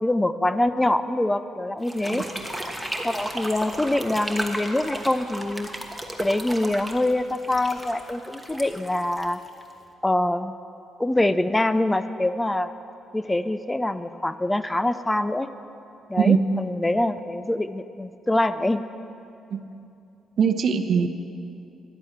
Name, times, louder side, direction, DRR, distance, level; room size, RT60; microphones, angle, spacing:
voice 1, 0.0-2.2 3.0-5.7 6.2-9.4 10.0-10.5 11.0-12.7 13.1-15.5 16.1-18.8, left 1 dB, 15° left, 12 dB, 0.4 m, -24 dB
sound 1, 1.8-9.8, right 1 dB, 5° right, 1.3 m, -34 dB
voice 2, 20.4-21.1, right 6 dB, 55° right, 9 dB, 0.8 m, -21 dB
11.0 x 8.9 x 7.9 m, 2.7 s
cardioid pair, 90°, 0 cm